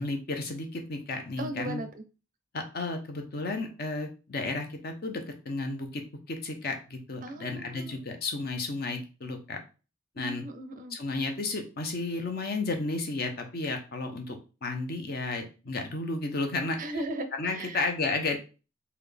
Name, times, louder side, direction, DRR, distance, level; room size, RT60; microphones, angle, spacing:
voice 1, 0.0-1.8 2.5-6.0 6.3-9.6 10.2-10.4 10.9-16.8 17.4-18.4, left 3 dB, 50° left, 4 dB, 0.7 m, -33 dB
voice 2, 1.4-2.0 7.2-8.0 10.2-11.0 16.8-17.8, right 1 dB, 40° right, 8 dB, 0.5 m, -37 dB
4.0 x 2.3 x 3.3 m, 0.33 s
head